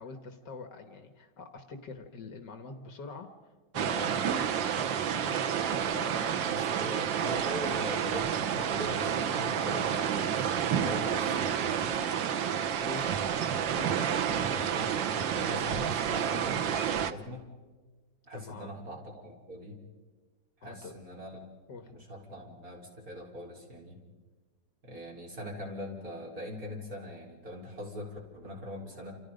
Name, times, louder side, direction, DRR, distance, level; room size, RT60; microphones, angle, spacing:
voice 1, 0.0-3.3 3.7-6.5 12.8-13.1 13.8-14.1 18.3-18.8 20.6-20.9 21.7-21.9, left 4 dB, 70° left, 7 dB, 2.1 m, -45 dB
sound 1, 3.8-17.1, right 8 dB, 85° right, 1.7 m, -30 dB
voice 2, 4.0-4.4 6.5-12.0 13.8-15.0 15.2-17.5 18.2-19.8 20.6-21.4 21.9-24.0 24.8-29.1, left 1 dB, 50° right, -2 dB, 5.4 m, -41 dB
29.0 x 28.5 x 5.2 m, 1.3 s
omnidirectional pair, 2.0 m